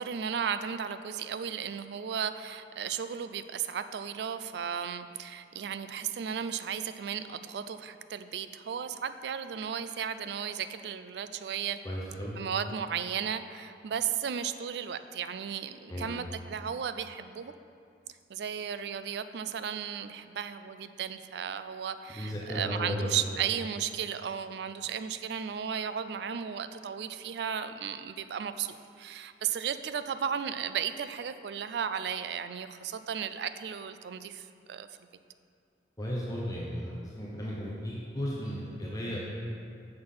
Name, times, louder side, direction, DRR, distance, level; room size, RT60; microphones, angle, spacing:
voice 1, 0.0-11.8 12.4-17.5 18.3-34.9, right 8 dB, 65° right, 11 dB, 0.3 m, -35 dB
voice 2, 11.8-12.4 15.9-16.1 22.1-23.2 36.0-39.2, equal, 20° left, -5 dB, 0.8 m, -35 dB
6.6 x 6.0 x 5.6 m, 2.4 s
head